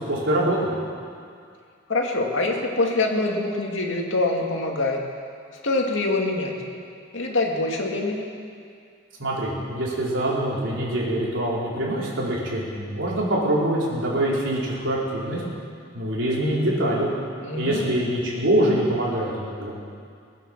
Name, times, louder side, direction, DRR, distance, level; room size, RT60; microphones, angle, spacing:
voice 1, 0.1-0.6 9.2-15.4 15.9-17.1 17.6-19.7, right 1 dB, 75° right, -6 dB, 4.4 m, -24 dB
voice 2, 1.9-5.0 5.6-6.5 7.1-8.3 17.4-17.9, left 2 dB, 80° left, 0 dB, 2.2 m, -24 dB
20.5 x 9.2 x 7.3 m, 2.2 s
head